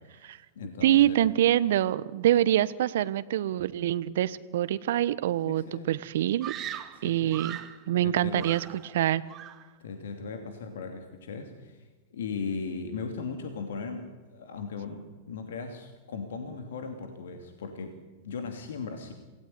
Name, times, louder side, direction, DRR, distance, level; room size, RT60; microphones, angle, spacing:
voice 1, 0.0-1.2 5.5-5.9 6.9-7.4 8.0-8.5 9.8-19.1, left 4 dB, 70° left, 6 dB, 2.8 m, -38 dB
voice 2, 0.8-6.5 7.0-7.6 7.9-8.6 8.9-9.2, right 12 dB, 65° right, 16 dB, 1.1 m, -25 dB
Screaming, 6.4-7.8 8.4-9.0 9.3-9.7, right 11 dB, 35° right, 2.3 m, -40 dB
27.5 x 18.0 x 9.8 m, 1.3 s
hypercardioid pair, 95°, 0 cm